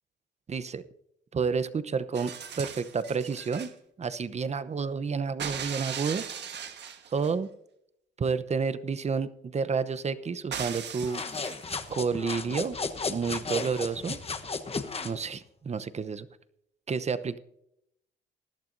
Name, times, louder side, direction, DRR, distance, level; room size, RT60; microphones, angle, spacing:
voice 1, 0.5-0.9 1.3-3.7 4.0-6.3 7.1-7.5 8.2-11.2 11.9-12.8 13.1-14.2 15.0-16.3 16.9-17.4, right 5 dB, 35° right, 14 dB, 0.8 m, -30 dB
sound 1, 2.1-3.7 5.4-7.4 10.5-11.9 13.2-13.3, right 8 dB, 60° right, 1.4 m, -38 dB
sound 2, 11.0-15.2, left 4 dB, 30° left, 1.1 m, -34 dB
19.5 x 11.5 x 2.7 m, 0.77 s
cardioid pair, 90°, 20 cm